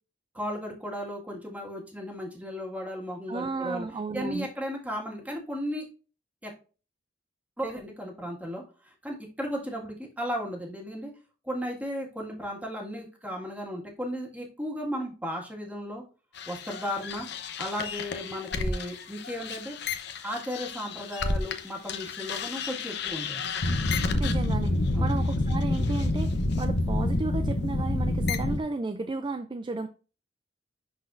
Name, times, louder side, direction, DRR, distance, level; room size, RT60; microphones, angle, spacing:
voice 1, 0.3-3.9 4.1-5.9 6.4-6.5 7.6-11.1 11.4-16.0 16.5-19.8 20.2-23.5 24.9-25.2, equal, 10° right, -1 dB, 1.8 m, -35 dB
voice 2, 3.3-4.5 24.1-26.3 26.6-29.9, right 3 dB, 25° right, 8 dB, 0.4 m, -33 dB
sound 1, 16.4-21.6 21.9-28.6, left 2 dB, 65° left, 0.8 m, -29 dB
11.0 x 4.1 x 2.5 m, 0.35 s
head